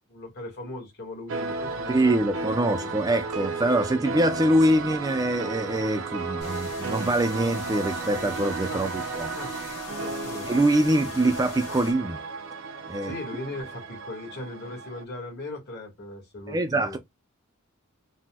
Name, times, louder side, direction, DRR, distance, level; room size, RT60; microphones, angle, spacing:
voice 1, 0.1-2.3 2.6-3.1 8.7-8.9 9.3-9.6 10.0-10.5 13.0-17.0, left 2 dB, 50° left, 1.4 m, -39 dB
sound 1, 1.3-15.0, right 4 dB, 65° right, 0.6 m, -34 dB
voice 2, 1.9-9.4 10.4-12.2 12.9-13.1 16.5-17.0, right 1 dB, 15° right, 0.3 m, -24 dB
sound 2, 6.4-11.9, left 2 dB, 85° left, 1.1 m, -38 dB
3.9 x 2.1 x 2.2 m
head